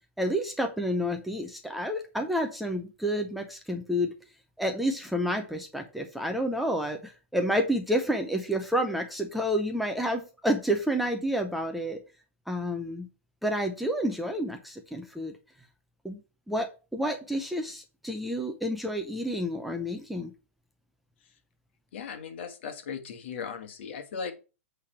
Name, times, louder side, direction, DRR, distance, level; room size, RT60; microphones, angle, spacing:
voice 1, 0.2-4.1 4.6-12.0 12.5-13.1 13.4-15.4 16.0-16.2 16.5-20.3, equal, ahead, 4 dB, 0.5 m, -29 dB
voice 2, 21.9-24.3, left 6 dB, 55° left, 7 dB, 1.6 m, -37 dB
8.3 x 3.4 x 5.8 m, 0.32 s
hypercardioid pair, 155°, 7 cm